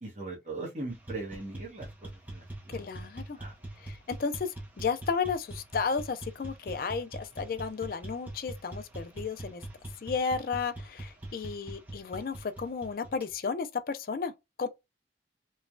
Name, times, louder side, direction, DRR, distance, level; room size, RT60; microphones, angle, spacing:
voice 1, 0.0-2.9 3.4-3.5, right 2 dB, 40° right, 0.9 m, -40 dB
sound 1, 0.9-13.3, right 1 dB, 10° right, 0.5 m, -43 dB
voice 2, 2.7-3.4 3.8-9.6 10.0-14.3 14.6-14.7, left 5 dB, 50° left, 0.4 m, -33 dB
3.1 x 2.2 x 2.5 m
head